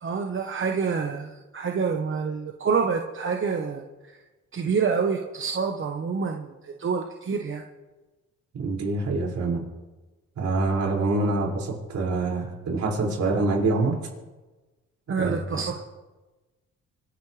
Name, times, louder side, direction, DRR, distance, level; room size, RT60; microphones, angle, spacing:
voice 1, 0.0-3.8 4.5-7.6 15.1-15.8, right 5 dB, 40° right, 2 dB, 1.2 m, -27 dB
voice 2, 8.6-9.6 10.4-13.9 15.2-15.6, right 3 dB, 65° right, -2 dB, 5.9 m, -25 dB
26.0 x 11.0 x 3.4 m, 1.2 s
cardioid pair, 90°, 30 cm